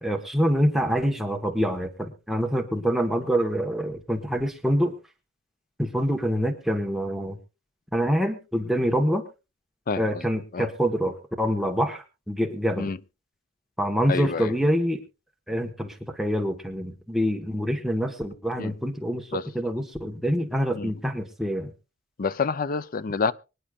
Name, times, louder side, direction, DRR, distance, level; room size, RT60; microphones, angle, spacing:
voice 1, 0.0-4.9 5.8-7.4 7.9-9.2 10.0-12.9 13.8-15.0 15.5-21.7, equal, ahead, 1.3 m, -26 dB
voice 2, 9.9-10.2 10.5-10.7 12.8-13.0 14.1-14.5 18.6-18.7 19.3-19.4 20.7-20.9 22.2-23.3, left 5 dB, 45° left, 0.5 m, -28 dB
24.5 x 10.0 x 2.4 m
head